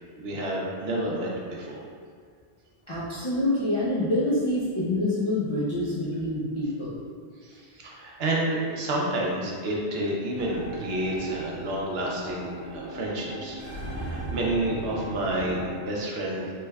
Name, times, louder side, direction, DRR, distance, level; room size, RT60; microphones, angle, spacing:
voice 1, 0.1-1.8 7.4-16.5, right 1 dB, 65° right, -3 dB, 0.8 m, -30 dB
voice 2, 2.9-7.0, left 1 dB, 45° left, -10 dB, 0.4 m, -26 dB
sound 1, 10.4-15.7, right 1 dB, 45° right, 1.1 m, -38 dB
3.3 x 3.2 x 2.2 m, 2.1 s
omnidirectional pair, 1.1 m